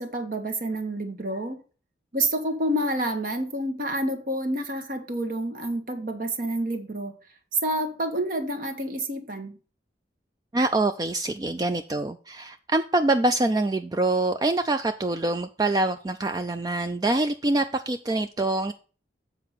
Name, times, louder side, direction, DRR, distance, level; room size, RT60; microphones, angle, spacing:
voice 1, 0.0-1.6 2.1-7.1 7.6-9.5, right 1 dB, 45° right, 1.2 m, -28 dB
voice 2, 10.5-18.7, right 2 dB, 20° right, 0.3 m, -25 dB
7.7 x 4.6 x 5.6 m
head